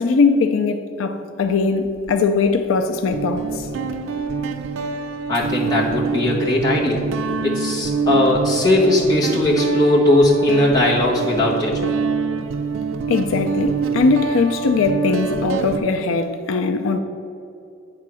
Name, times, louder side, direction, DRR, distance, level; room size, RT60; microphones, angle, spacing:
voice 1, 0.0-3.7 13.1-17.0, left 4 dB, 85° left, 0.5 m, -20 dB
Guitar, 1.9-2.1 3.1-15.8, right 5 dB, 80° right, 0.4 m, -25 dB
voice 2, 5.3-7.0 7.4-11.9, left 2 dB, 20° left, 1.3 m, -18 dB
8.4 x 3.7 x 6.2 m
head